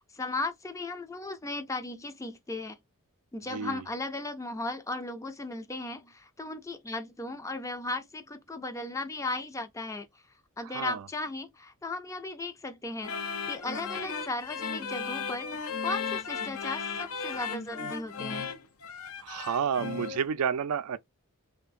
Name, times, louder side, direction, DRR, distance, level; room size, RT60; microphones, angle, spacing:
voice 1, 0.1-2.8 3.3-10.1 10.6-18.5, left 2 dB, 15° left, 0.4 m, -36 dB
voice 2, 3.5-3.8 10.6-11.0 19.2-21.0, right 7 dB, 90° right, 0.4 m, -30 dB
sound 1, 13.0-20.2, left 5 dB, 70° left, 0.5 m, -35 dB
3.2 x 2.1 x 2.4 m
head